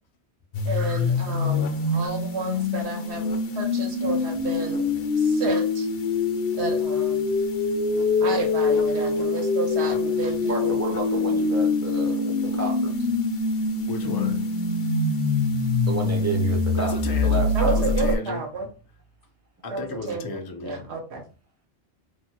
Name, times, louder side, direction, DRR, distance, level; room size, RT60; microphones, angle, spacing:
sound 1, 0.5-18.2, left 3 dB, 65° left, 0.8 m, -24 dB
voice 1, 0.6-3.2 3.5-4.8 5.2-5.9 6.5-7.3 8.2-10.7 17.5-18.7 19.7-21.2, right 3 dB, 75° right, 2 dB, 0.9 m, -31 dB
voice 2, 10.4-12.9 15.9-16.9 17.2-17.8, right 3 dB, 20° right, -1 dB, 0.5 m, -31 dB
voice 3, 13.9-14.6 15.3-15.4 16.7-18.4 19.6-20.9, left 2 dB, 35° left, 3 dB, 0.3 m, -35 dB
3.0 x 2.1 x 2.9 m, 0.35 s
omnidirectional pair, 1.1 m